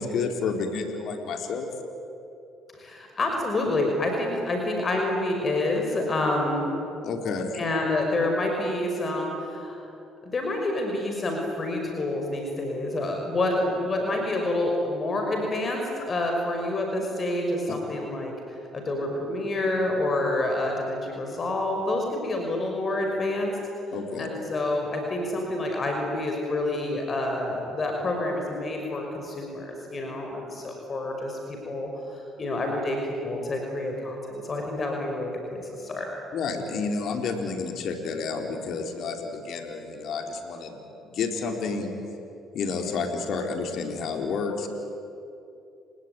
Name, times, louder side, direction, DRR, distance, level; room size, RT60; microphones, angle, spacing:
voice 1, 0.0-1.7 7.0-7.6 17.7-17.8 23.9-24.3 36.3-41.9 42.5-44.7, left 4 dB, 65° left, 4 dB, 4.2 m, -30 dB
voice 2, 2.7-6.7 7.5-9.8 10.2-18.3 18.7-23.6 24.2-33.0 33.2-36.1, left 2 dB, 40° left, 2 dB, 5.8 m, -28 dB
30.0 x 19.5 x 9.6 m, 2.7 s
supercardioid pair, 65°, 0 cm